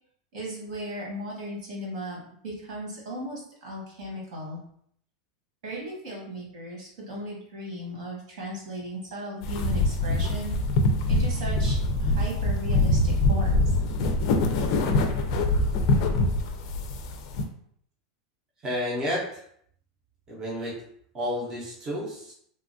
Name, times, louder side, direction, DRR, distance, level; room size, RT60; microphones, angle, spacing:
voice 1, 0.3-4.6 5.6-10.6 11.1-13.7, equal, 75° right, -3 dB, 1.4 m, -36 dB
sound 1, 9.4-17.4, left 2 dB, 50° left, 0.4 m, -24 dB
voice 2, 18.6-19.4 20.3-20.8 21.1-22.3, left 1 dB, 15° right, -5 dB, 0.5 m, -31 dB
2.9 x 2.3 x 2.5 m, 0.66 s
supercardioid pair, 165°, 3 cm